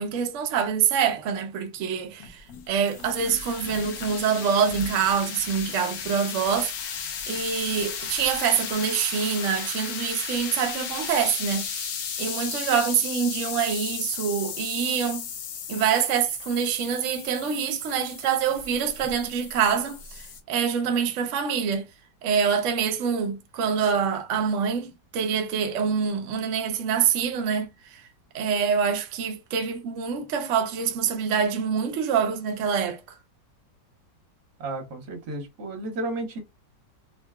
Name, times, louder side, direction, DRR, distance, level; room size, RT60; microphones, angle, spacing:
voice 1, 0.0-15.3 15.7-21.9 22.2-28.0 28.3-33.0, right 7 dB, 80° right, 0.6 m, -26 dB
sound 1, 2.2-20.4, left 7 dB, 65° left, 1.0 m, -35 dB
voice 2, 34.6-36.4, right 2 dB, 60° right, 1.6 m, -32 dB
3.6 x 2.2 x 2.2 m
omnidirectional pair, 2.0 m